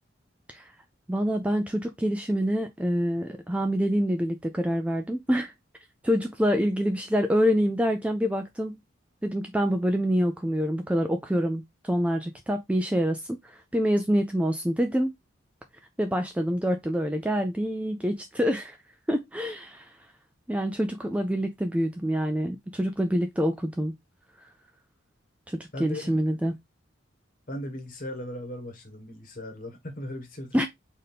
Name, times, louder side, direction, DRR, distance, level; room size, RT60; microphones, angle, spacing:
voice 1, 1.1-5.5 6.0-8.8 9.2-15.1 16.0-18.8 19.1-19.9 20.5-23.9 25.5-26.5 30.5-30.7, equal, 5° right, 0.3 m, -26 dB
voice 2, 25.7-26.1 27.5-30.6, left 1 dB, 40° left, 1.2 m, -37 dB
4.1 x 2.7 x 3.4 m
head